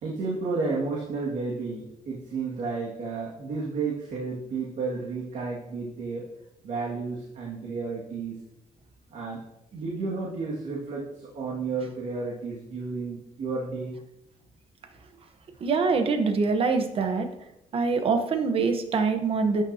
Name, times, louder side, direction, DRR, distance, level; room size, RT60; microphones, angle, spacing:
voice 1, 0.0-6.3 6.6-8.4 9.1-9.4 9.7-14.0, right 4 dB, 60° right, -4 dB, 2.0 m, -32 dB
voice 2, 15.6-17.3 17.7-19.6, right 4 dB, 40° right, 7 dB, 1.1 m, -24 dB
12.0 x 9.2 x 2.8 m, 0.86 s
cardioid pair, 165°, 14 cm